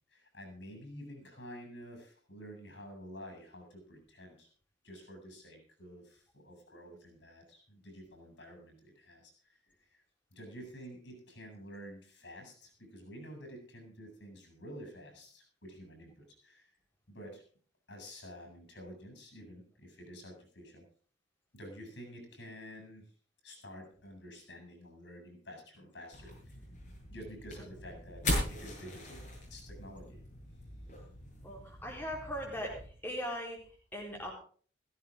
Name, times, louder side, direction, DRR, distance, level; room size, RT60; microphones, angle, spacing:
voice 1, 0.1-4.5 4.8-10.0 10.3-16.7 17.1-17.4 17.9-20.8 21.5-23.0 23.4-26.5 27.1-29.2 29.5-30.2, equal, 85° left, 5 dB, 7.2 m, -50 dB
sound 1, 26.1-32.9, left 1 dB, 45° left, 7.3 m, -40 dB
voice 2, 31.4-34.3, equal, 10° left, -2 dB, 4.1 m, -40 dB
16.5 x 15.0 x 3.7 m, 0.43 s
head